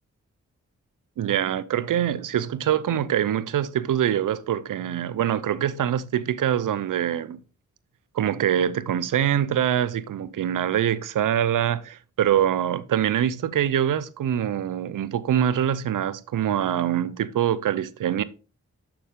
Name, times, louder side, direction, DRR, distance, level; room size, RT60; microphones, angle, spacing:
voice 1, 1.2-7.4 8.1-18.2, right 10 dB, 85° right, 0.6 m, -24 dB
6.9 x 6.5 x 3.6 m
cardioid pair, 45°, 31 cm